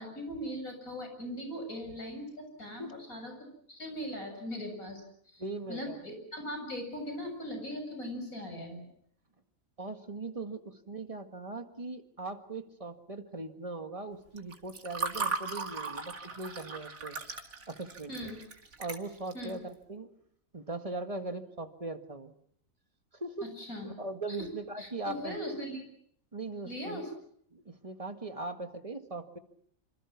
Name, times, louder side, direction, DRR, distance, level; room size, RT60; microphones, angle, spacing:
voice 1, 0.0-5.4 5.7-8.8 18.1-18.4 19.3-19.5 23.6-23.9 24.3-24.5 24.8-25.8 26.6-27.1, equal, 90° left, 5 dB, 7.7 m, -39 dB
voice 2, 5.4-6.0 9.8-17.2 17.7-18.3 18.8-20.1 20.5-22.3 23.1-23.5 23.8-25.4 26.3-27.0 27.5-29.4, right 3 dB, 25° right, 6 dB, 1.9 m, -40 dB
Water / Fill (with liquid), 14.4-19.5, right 4 dB, 80° right, 2.7 m, -37 dB
27.0 x 26.5 x 6.0 m, 0.66 s
omnidirectional pair, 1.4 m